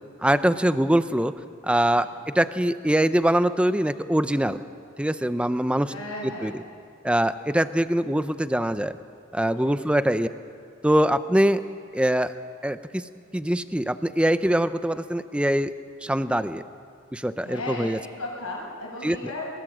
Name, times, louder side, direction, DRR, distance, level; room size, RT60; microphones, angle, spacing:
voice 1, 0.2-1.3 1.6-4.6 5.0-5.9 6.4-6.6 7.0-9.0 9.3-10.3 10.8-11.6 11.9-12.3 12.6-15.7 16.0-16.6 17.1-18.0 19.0-19.2, right 1 dB, 5° right, 12 dB, 0.5 m, -23 dB
voice 2, 5.9-6.5 9.6-9.8 17.4-17.9 18.2-19.5, left 2 dB, 85° left, -2 dB, 7.1 m, -35 dB
23.0 x 21.0 x 7.5 m, 2.3 s
head